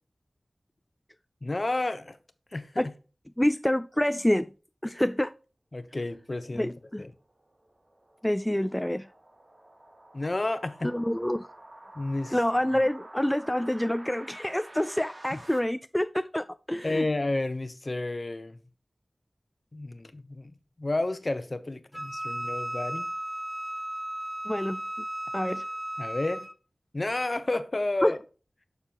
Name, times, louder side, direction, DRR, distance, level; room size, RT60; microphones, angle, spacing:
voice 1, 1.4-2.2 2.5-2.9 5.7-6.7 7.0-7.1 10.1-10.9 11.9-12.4 15.3-15.4 16.8-18.6 19.7-20.5 20.8-23.1 26.0-26.5 26.9-28.2, left 2 dB, 45° left, 0.9 m, -31 dB
voice 2, 3.4-4.5 4.8-5.3 6.5-7.0 8.2-9.1 10.8-11.5 12.3-17.0 24.5-24.8 25.3-25.6 28.0-28.1, left 1 dB, 10° left, 0.4 m, -27 dB
sound 1, 6.9-15.6, right 1 dB, 45° right, 1.8 m, -50 dB
Wind instrument woodwind instrument, 21.9-26.5, right 1 dB, 5° right, 2.3 m, -35 dB
6.9 x 6.7 x 2.9 m
wide cardioid pair, 55°, 0 cm